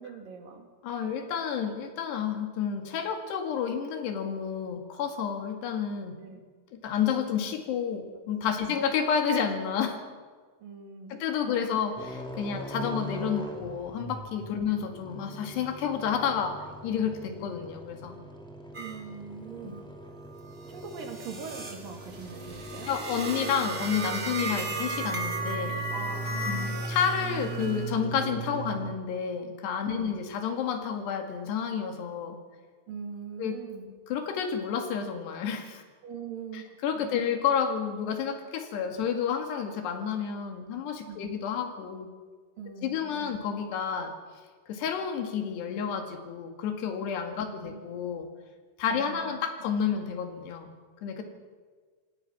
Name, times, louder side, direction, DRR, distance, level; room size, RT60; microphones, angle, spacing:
voice 1, 0.0-0.7 6.2-6.4 8.6-8.8 10.6-11.2 14.5-14.7 18.8-19.8 20.7-22.9 25.9-26.8 29.9-30.2 32.9-33.9 36.0-36.7 37.0-37.3 41.1-41.3 42.6-43.3 47.2-47.3 47.7-47.9 48.9-49.4, right 6 dB, 60° right, 3 dB, 3.6 m, -42 dB
voice 2, 0.8-6.2 6.7-10.0 11.1-16.6 16.8-18.2 19.6-19.7 22.9-25.8 26.5-32.4 33.4-33.6 34.1-35.8 36.5-42.1 42.8-44.1 44.7-48.3 48.8-50.7 51.0-51.2, left 7 dB, 75° left, 5 dB, 4.0 m, -30 dB
sound 1, 12.0-28.9, right 3 dB, ahead, 1.3 m, -39 dB
sound 2, 18.7-19.0 19.4-28.0, right 3 dB, 25° right, 1.8 m, -36 dB
26.5 x 18.5 x 6.0 m, 1.5 s
omnidirectional pair, 4.9 m